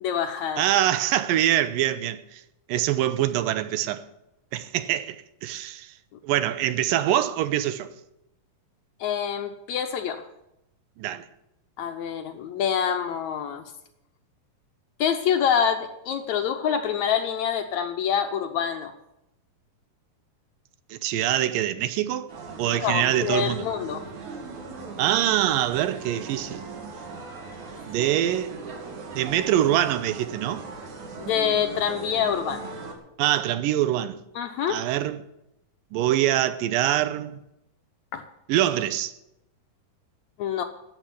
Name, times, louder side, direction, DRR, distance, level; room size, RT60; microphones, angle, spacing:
voice 1, 0.0-0.6 9.0-10.3 11.8-13.7 15.0-18.9 22.7-24.1 28.0-28.1 31.2-32.7 34.4-34.8 38.1-38.3 40.4-40.6, left 8 dB, 70° left, 1.9 m, -26 dB
voice 2, 0.6-2.4 2.7-4.0 4.5-5.9 6.2-7.9 11.0-11.3 20.9-22.3 22.6-23.7 25.0-26.7 27.9-28.5 29.1-30.6 33.2-34.2 34.7-35.2 35.9-37.4 38.5-39.1, right 12 dB, 90° right, 2.4 m, -24 dB
sound 1, 22.3-32.9, right 4 dB, 60° right, 3.5 m, -39 dB
13.0 x 7.5 x 9.8 m
omnidirectional pair, 4.0 m